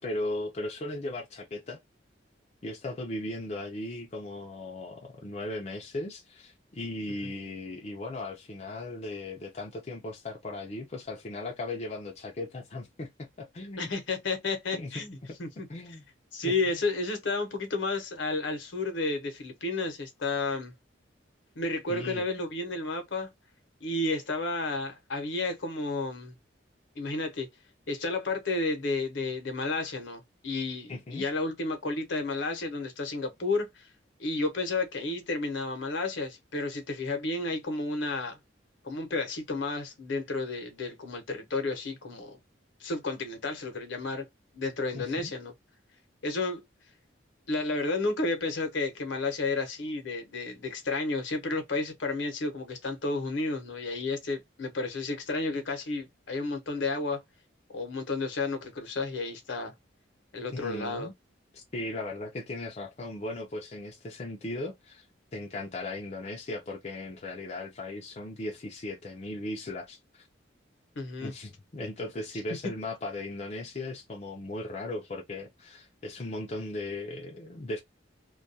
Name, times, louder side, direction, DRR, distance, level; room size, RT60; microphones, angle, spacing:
voice 1, 0.0-1.8 2.6-13.9 14.7-15.4 15.7-16.0 16.5-16.6 21.9-22.2 30.9-31.2 44.9-45.3 60.5-61.1 61.5-65.1 65.3-70.3 71.2-77.8, left 2 dB, 35° left, 0.4 m, -37 dB
voice 2, 13.8-15.7 16.3-20.7 21.6-23.3 23.8-26.4 27.0-27.5 27.9-33.9 34.2-38.4 38.8-42.4 42.8-44.2 44.5-45.5 46.2-46.6 47.5-57.2 57.7-59.7 60.3-61.1 71.0-71.3, left 3 dB, 75° left, 0.8 m, -32 dB
2.3 x 2.2 x 2.6 m
head